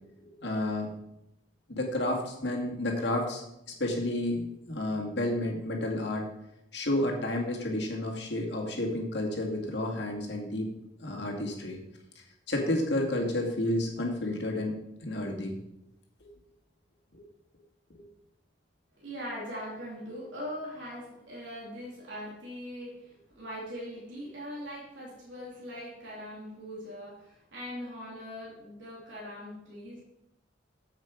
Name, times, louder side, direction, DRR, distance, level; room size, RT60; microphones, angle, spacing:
voice 1, 0.4-0.9 1.7-3.4 3.8-6.3 6.7-10.7 11.0-11.8 12.5-15.6 17.1-17.2 17.9-18.0, left 1 dB, 65° left, 0 dB, 2.2 m, -31 dB
voice 2, 19.0-30.0, equal, 80° right, -5 dB, 3.5 m, -41 dB
9.1 x 7.6 x 5.1 m, 0.84 s
head